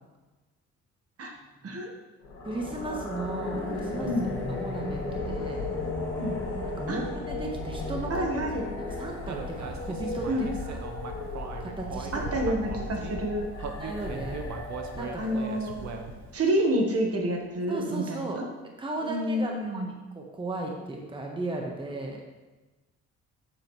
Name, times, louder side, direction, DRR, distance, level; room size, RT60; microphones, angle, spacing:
sound 1, 2.2-16.3, left 2 dB, 80° left, 2.4 m, -35 dB
voice 1, 2.4-4.1 4.5-5.6 6.6-8.2 8.8-10.8 11.6-12.2 13.6-14.4 14.9-15.2 17.7-18.4 18.8-22.2, right 2 dB, 15° right, 0 dB, 1.2 m, -36 dB
voice 2, 4.0-4.3 6.2-6.4 6.9-7.0 8.1-8.6 10.3-10.5 12.1-13.4 15.2-15.9 16.3-18.4 19.0-19.9, right 1 dB, 50° right, 2 dB, 1.4 m, -28 dB
Human voice, 9.3-13.2 13.6-16.3, right 5 dB, 65° right, 0.9 m, -39 dB
7.5 x 7.4 x 3.2 m, 1.2 s
cardioid pair, 90°, 30 cm